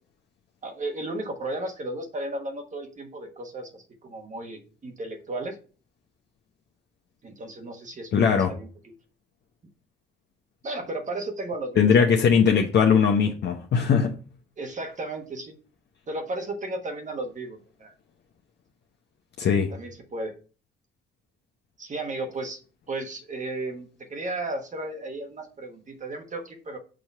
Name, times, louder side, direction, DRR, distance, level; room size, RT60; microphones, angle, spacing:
voice 1, 0.6-5.6 7.2-8.7 10.6-11.9 12.5-12.6 14.6-15.5 16.1-17.9 19.7-20.3 21.8-22.6 22.9-26.8, right 2 dB, 40° right, 1.3 m, -34 dB
voice 2, 8.1-8.5 11.8-14.1 19.4-19.7, left 6 dB, 60° left, 0.8 m, -20 dB
6.2 x 2.9 x 5.4 m
cardioid pair, 90°, 20 cm